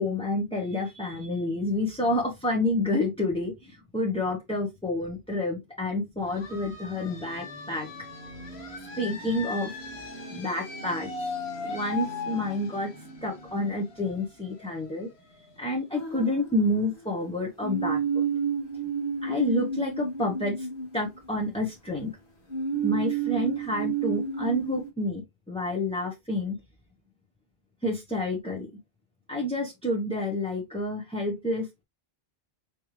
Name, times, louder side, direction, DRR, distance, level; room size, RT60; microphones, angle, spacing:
voice 1, 0.0-7.9 8.9-11.1 11.6-12.9 13.2-15.1 15.6-18.2 19.2-20.7 20.9-22.1 22.8-26.6 27.8-28.7 29.3-31.8, left 1 dB, 5° left, 0.8 m, -29 dB
sound 1, 6.2-15.7, left 3 dB, 80° left, 1.4 m, -39 dB
sound 2, 15.9-17.0 17.6-21.6 22.5-24.9, right 6 dB, 55° left, 1.4 m, -30 dB
5.3 x 3.2 x 3.0 m
omnidirectional pair, 1.1 m